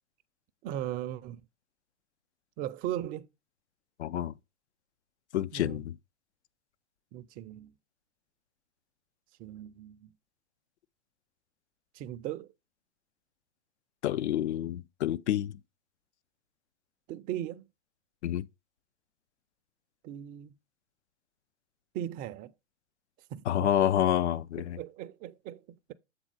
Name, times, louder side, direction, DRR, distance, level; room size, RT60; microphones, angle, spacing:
voice 1, 0.6-1.4 2.6-3.3 5.5-5.8 7.1-7.7 9.4-10.1 11.9-12.5 17.1-17.7 20.0-20.5 21.9-22.5 23.3-23.7 24.6-25.9, right 12 dB, 25° right, 0.4 m, -38 dB
voice 2, 4.0-4.3 5.3-5.9 14.0-15.6 18.2-18.5 23.5-24.8, left 11 dB, 75° left, 0.5 m, -28 dB
7.5 x 3.7 x 4.7 m
hypercardioid pair, 100°, 34 cm